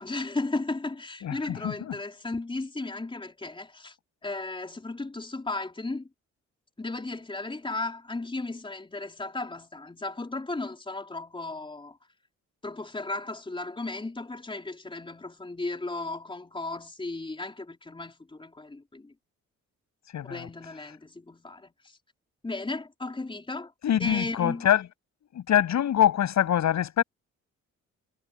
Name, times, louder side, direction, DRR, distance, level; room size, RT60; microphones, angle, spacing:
voice 1, 0.0-4.0 4.2-6.1 6.8-12.0 12.6-19.1 20.2-22.0 22.4-23.7 24.0-24.7, left 2 dB, 15° left, 4.4 m, -35 dB
voice 2, 1.2-1.9 20.1-20.5 23.8-24.9 25.3-27.0, left 10 dB, 65° left, 7.6 m, -24 dB
cardioid pair, 90°, 30 cm